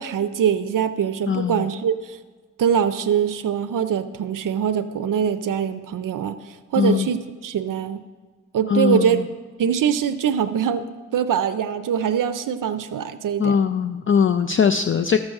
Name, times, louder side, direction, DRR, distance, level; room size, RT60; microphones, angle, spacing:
voice 1, 0.0-2.2 2.6-8.0 8.5-9.3 9.6-10.8 11.1-13.6, right 8 dB, 80° right, 9 dB, 0.5 m, -23 dB
voice 2, 1.3-1.7 6.8-7.1 8.7-9.2 13.4-15.2, left 6 dB, 40° left, 9 dB, 0.4 m, -20 dB
13.5 x 6.2 x 6.4 m, 1.4 s
wide cardioid pair, 100°, 32 cm